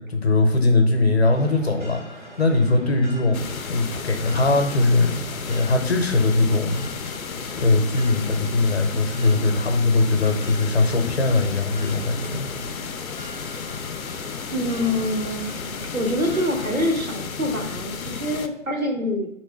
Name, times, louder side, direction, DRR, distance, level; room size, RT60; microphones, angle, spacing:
voice 1, 0.0-3.4 3.7-7.0 7.5-12.5, left 2 dB, 50° left, 4 dB, 0.7 m, -21 dB
sound 1, 1.3-16.9, right 1 dB, 35° right, 0.7 m, -43 dB
sound 2, 3.3-18.5, left 6 dB, 80° left, 0.5 m, -33 dB
voice 2, 14.5-15.6 15.9-19.3, left 1 dB, 75° right, 2 dB, 1.1 m, -25 dB
3.7 x 3.1 x 4.3 m, 0.80 s
figure-of-eight pair, 150°, 41 cm